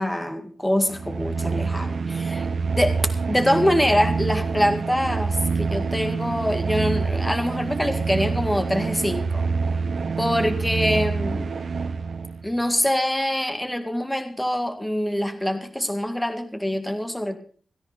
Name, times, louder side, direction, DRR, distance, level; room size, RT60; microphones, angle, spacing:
voice 1, 0.0-2.5 2.8-2.9 3.3-9.5 10.2-11.5 12.4-17.4, equal, 5° left, 7 dB, 2.1 m, -24 dB
sound 1, 0.8-12.5, right 4 dB, 60° right, 1.2 m, -26 dB
17.0 x 16.5 x 4.1 m, 0.42 s
wide cardioid pair, 165°, 0 cm